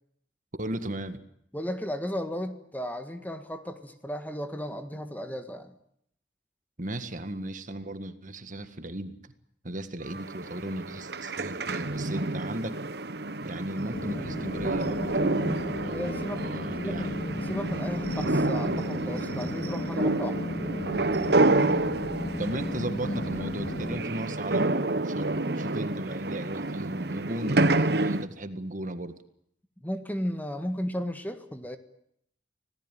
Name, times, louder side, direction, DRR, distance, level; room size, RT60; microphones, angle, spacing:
voice 1, 0.6-1.2 6.8-9.2 9.6-12.8 13.4-17.2 22.4-29.1, right 1 dB, 45° right, 10 dB, 1.8 m, -36 dB
voice 2, 1.5-5.7 15.9-20.4 29.8-31.8, equal, 10° left, 8 dB, 1.6 m, -35 dB
sound 1, 10.1-28.2, right 2 dB, 60° right, 1.1 m, -29 dB
sound 2, 13.9-24.0, left 1 dB, 50° left, 3.1 m, -34 dB
26.5 x 18.0 x 9.2 m, 0.72 s
head